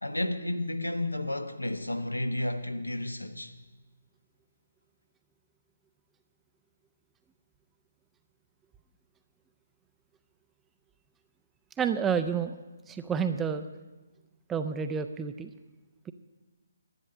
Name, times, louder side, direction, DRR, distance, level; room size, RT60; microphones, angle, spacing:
voice 1, 0.0-3.5, left 1 dB, 85° left, 1.0 m, -32 dB
voice 2, 11.8-12.6 12.9-13.7 14.5-15.5 16.1-16.2, right 7 dB, 10° right, 0.4 m, -29 dB
11.0 x 9.5 x 6.7 m
figure-of-eight pair, 140°, 0 cm